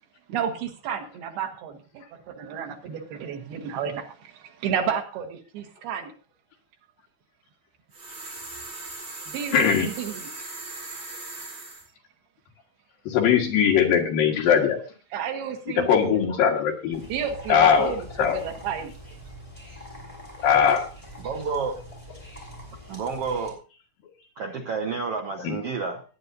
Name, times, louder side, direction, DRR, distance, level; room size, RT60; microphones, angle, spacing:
voice 1, 0.3-2.0 2.4-6.1 9.3-10.3 15.1-16.2 17.1-18.9, right 8 dB, 90° right, 3 dB, 3.6 m, -31 dB
sound 1, 7.9-11.9, right 2 dB, 45° right, 8.4 m, -39 dB
voice 2, 9.5-9.9 13.1-14.8 15.7-17.0 17.5-18.4 20.4-20.9 25.4-25.6, left 8 dB, 70° left, 1 dB, 3.4 m, -21 dB
sound 2, 16.9-23.5, left 1 dB, 10° left, 4.4 m, -43 dB
voice 3, 21.2-21.8 22.9-23.6 24.4-26.0, right 5 dB, 70° right, 3 dB, 1.4 m, -30 dB
18.5 x 9.8 x 2.7 m, 0.35 s
omnidirectional pair, 4.3 m